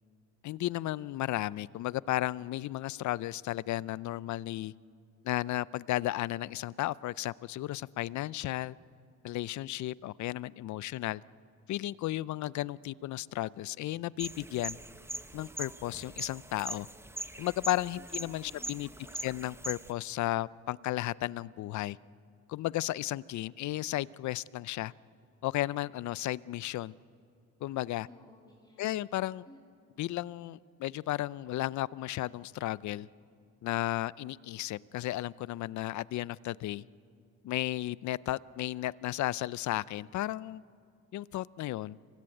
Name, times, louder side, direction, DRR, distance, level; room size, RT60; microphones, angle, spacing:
voice 1, 0.4-4.7 5.2-8.8 9.2-11.2 11.7-14.8 15.3-16.9 17.4-18.9 19.2-22.0 22.5-24.9 25.4-27.0 27.6-28.1 28.8-29.4 30.0-33.1 33.6-36.8 37.4-40.6 41.1-42.0, left 15 dB, 70° left, 21 dB, 0.5 m, -34 dB
sound 1, 14.2-19.9, right 1 dB, 10° right, 0.8 m, -42 dB
voice 2, 18.0-19.5 28.0-29.1 29.4-29.6, left 1 dB, 15° left, -3 dB, 3.2 m, -56 dB
25.0 x 18.0 x 9.1 m, 2.3 s
cardioid pair, 90°, 30 cm